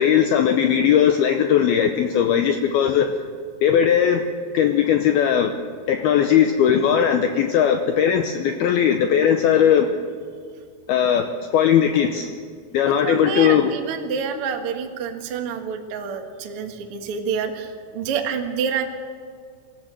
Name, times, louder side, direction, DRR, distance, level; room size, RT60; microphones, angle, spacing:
voice 1, 0.0-3.1 3.6-4.2 4.5-5.5 5.9-9.9 10.9-12.3 12.7-13.7, left 8 dB, 80° left, 6 dB, 2.3 m, -18 dB
voice 2, 13.0-18.9, right 6 dB, 85° right, 4 dB, 1.2 m, -28 dB
25.5 x 14.5 x 7.6 m, 2.1 s
omnidirectional pair, 5.4 m